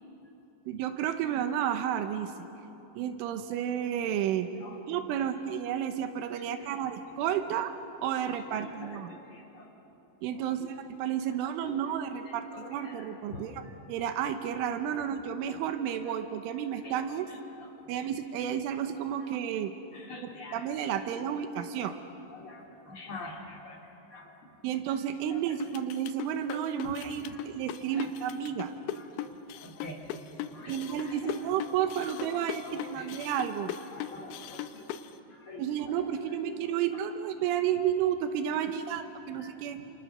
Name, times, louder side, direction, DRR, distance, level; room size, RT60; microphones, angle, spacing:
voice 1, 0.7-2.3 3.0-4.5 4.9-7.7 8.0-9.1 10.2-17.3 17.9-19.7 20.2-22.0 24.6-28.7 30.7-33.7 35.6-39.8, right 9 dB, 90° right, 8 dB, 3.6 m, -32 dB
voice 2, 6.4-6.9 8.3-9.7 10.4-10.7 11.6-13.7 15.0-15.1 15.5-15.6 16.1-16.2 16.8-17.0 17.3-17.7 19.9-20.6 21.0-21.3 22.3-23.8 24.1-24.4 25.3-25.6 27.2-27.4 27.8-28.1 28.9-29.1 29.5-30.0 30.5-31.4 32.2-33.2 33.9-34.9 35.3-36.9 37.4-37.5 38.5-38.7 39.4-39.5, left 3 dB, 30° left, -1 dB, 3.6 m, -46 dB
sound 1, 25.6-35.1, left 11 dB, 75° left, 2.9 m, -39 dB
30.0 x 28.0 x 6.7 m, 3.0 s
omnidirectional pair, 5.5 m